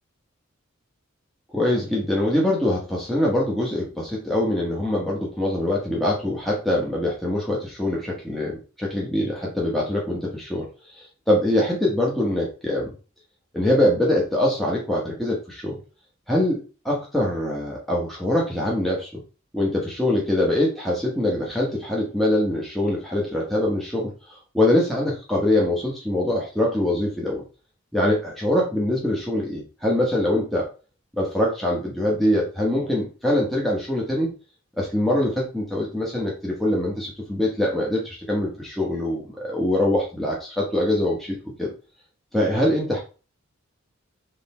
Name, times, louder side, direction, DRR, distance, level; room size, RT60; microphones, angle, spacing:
voice 1, 1.5-12.9 13.5-15.8 16.3-19.2 19.5-27.4 27.9-30.7 31.2-34.3 34.8-41.7 42.3-43.0, left 1 dB, ahead, -4 dB, 1.0 m, -23 dB
3.8 x 3.2 x 4.3 m, 0.34 s
head